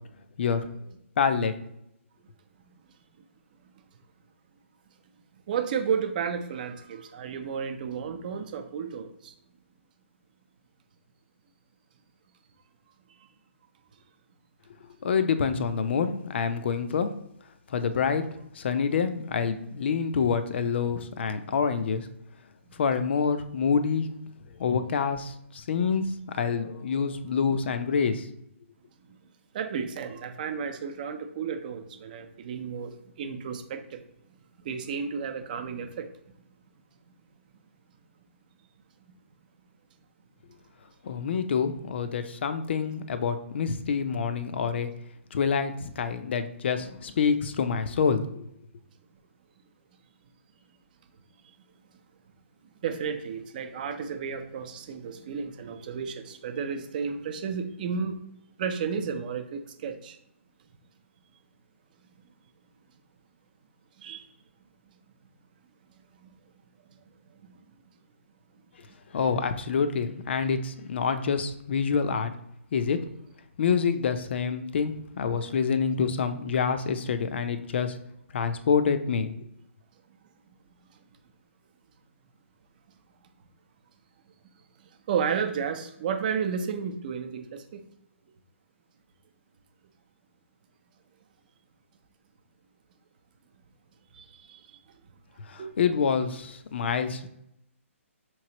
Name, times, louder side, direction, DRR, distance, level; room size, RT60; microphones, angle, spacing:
voice 1, 1.2-1.5 15.0-17.1 17.7-22.1 22.7-24.1 24.6-28.3 41.0-44.9 45.3-48.4 69.1-72.3 72.7-73.0 73.6-78.0 78.3-79.3 95.5-97.3, left 6 dB, 55° left, 10 dB, 0.5 m, -27 dB
voice 2, 5.5-9.3 29.5-32.9 33.2-34.0 34.6-36.1 52.8-58.2 58.6-60.2 64.0-64.3 85.1-87.8 94.2-94.6 95.6-95.7, right 6 dB, 40° right, 6 dB, 0.6 m, -32 dB
5.6 x 3.1 x 2.9 m, 0.77 s
hypercardioid pair, 155°, 7 cm